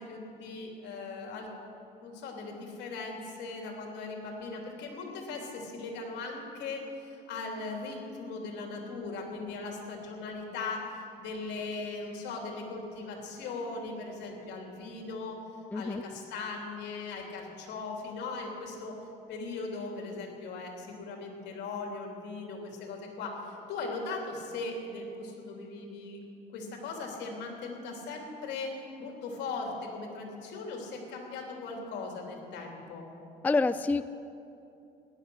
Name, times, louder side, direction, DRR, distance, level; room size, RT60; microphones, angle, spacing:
voice 1, 0.0-1.5 2.0-15.4 15.7-18.9 19.3-26.2 26.5-28.7 29.0-33.1, left 3 dB, 75° left, 1 dB, 3.2 m, -39 dB
voice 2, 15.7-16.0 33.4-34.1, left 3 dB, 10° left, 13 dB, 0.3 m, -27 dB
17.5 x 11.5 x 6.4 m, 2.7 s
cardioid pair, 115°, 18 cm